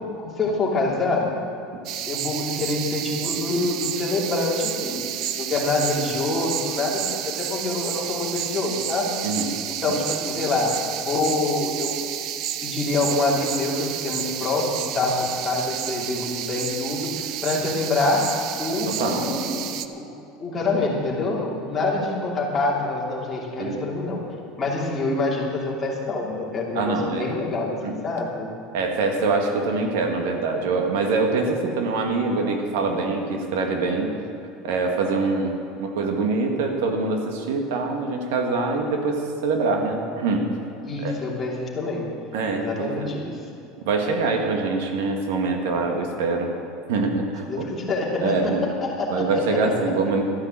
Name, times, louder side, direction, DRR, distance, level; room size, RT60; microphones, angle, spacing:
voice 1, 0.2-1.3 2.1-9.1 9.7-10.8 11.0-12.0 12.6-18.3 18.6-19.7 20.0-20.1 20.4-24.2 24.6-28.5 40.8-42.1 42.5-43.4 47.4-49.8, left 2 dB, 20° left, -3 dB, 2.8 m, -26 dB
sound 1, 1.8-19.8, right 11 dB, 50° right, 0.7 m, -31 dB
voice 2, 9.2-9.6 9.9-10.0 18.9-19.3 23.6-23.8 26.7-27.4 27.8-28.0 28.7-34.1 34.6-40.5 41.0-41.1 42.3-43.1 43.9-46.6 46.9-47.7 48.2-48.7 49.1-50.2, right 3 dB, 80° right, 3 dB, 2.1 m, -24 dB
13.0 x 10.5 x 7.7 m, 2.7 s
supercardioid pair, 145°, 0 cm